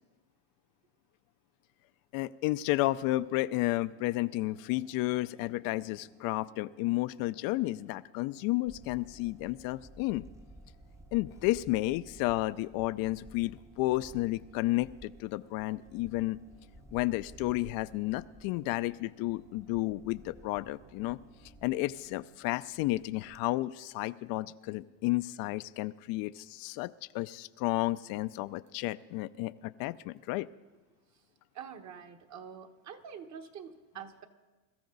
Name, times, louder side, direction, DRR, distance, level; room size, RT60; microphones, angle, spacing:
voice 1, 2.1-10.3 11.1-16.4 16.9-21.2 21.6-30.5, left 18 dB, 55° left, 13 dB, 0.5 m, -32 dB
sound 1, 2.9-22.4, right 4 dB, 80° right, 5.1 m, -64 dB
Camera, 8.7-23.4, equal, 5° right, 0.6 m, -55 dB
voice 2, 31.5-34.2, right 7 dB, 40° right, 6 dB, 1.5 m, -46 dB
22.0 x 13.5 x 4.0 m, 1.2 s
supercardioid pair, 120°, 42 cm